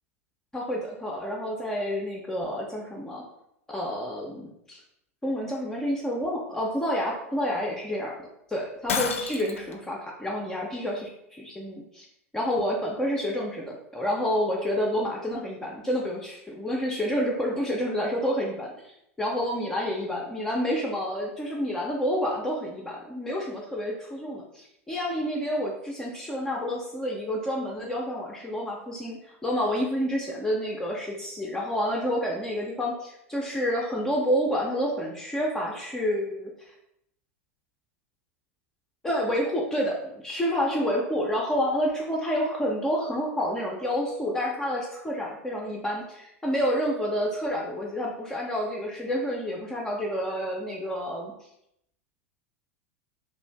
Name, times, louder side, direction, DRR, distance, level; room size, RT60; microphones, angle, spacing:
voice 1, 0.5-3.2 3.7-4.8 5.2-8.2 8.5-12.1 12.3-36.7 39.0-51.3, equal, 5° left, -2 dB, 0.5 m, -29 dB
Shatter, 8.9-9.7, left 6 dB, 65° left, 0.4 m, -29 dB
2.5 x 2.4 x 3.3 m, 0.77 s
figure-of-eight pair, 85°, 8 cm